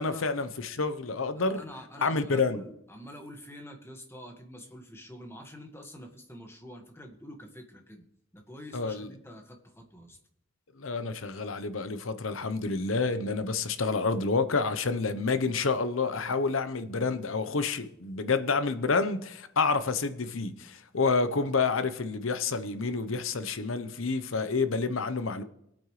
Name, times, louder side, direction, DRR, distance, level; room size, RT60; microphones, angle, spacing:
voice 1, 0.0-1.6 2.0-2.6 8.7-9.1 10.8-25.4, left 4 dB, 90° left, 0.9 m, -29 dB
voice 2, 1.4-8.0 8.3-10.2, left 1 dB, 10° left, 1.6 m, -46 dB
22.0 x 8.8 x 3.2 m
head